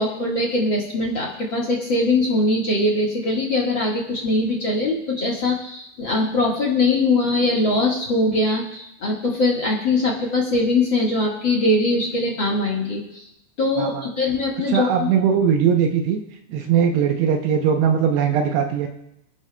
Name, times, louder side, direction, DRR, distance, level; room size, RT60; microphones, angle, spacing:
voice 1, 0.0-13.3 13.6-15.1, left 2 dB, 65° left, -1 dB, 1.2 m, -21 dB
voice 2, 13.8-14.1 14.7-16.2 16.5-18.9, right 7 dB, 80° right, 4 dB, 2.8 m, -20 dB
27.0 x 11.0 x 2.2 m, 0.81 s
omnidirectional pair, 4.9 m